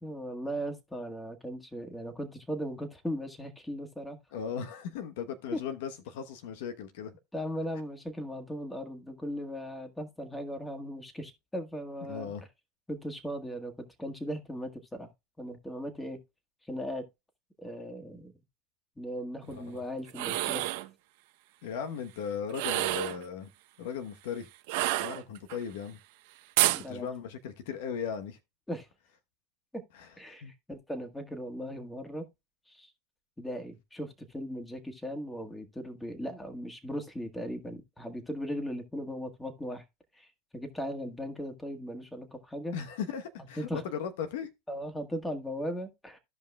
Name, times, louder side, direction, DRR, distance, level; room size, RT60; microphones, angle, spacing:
voice 1, 0.0-4.2 5.5-5.6 7.3-12.3 12.9-15.1 15.4-16.2 16.6-17.0 17.6-18.4 19.0-20.7 26.7-27.1 28.7-28.9 29.7-29.8 30.2-32.3 32.7-32.9 33.4-39.8 40.1-42.8 43.6-43.8 44.7-46.2, equal, 5° left, 1.7 m, -38 dB
voice 2, 4.3-7.1 12.1-12.4 19.5-19.8 21.6-23.5 23.8-24.5 25.0-26.0 26.9-28.4 29.9-30.1 30.4-30.5 42.7-44.5, left 7 dB, 75° left, 1.0 m, -37 dB
sound 1, 20.1-20.9 22.5-23.2 24.7-25.6 26.6-26.8, right 17 dB, 70° right, 0.8 m, -28 dB
15.0 x 5.3 x 2.3 m
hypercardioid pair, 105°, 0 cm